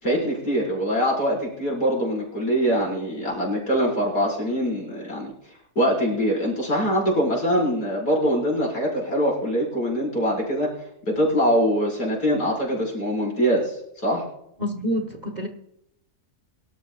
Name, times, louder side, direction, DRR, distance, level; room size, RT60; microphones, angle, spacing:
voice 1, 0.0-5.3 5.8-10.7 11.1-14.2, equal, 80° left, -4 dB, 5.9 m, -23 dB
voice 2, 14.6-15.5, equal, 30° right, 5 dB, 1.1 m, -27 dB
24.0 x 12.5 x 2.4 m, 0.78 s
omnidirectional pair, 1.7 m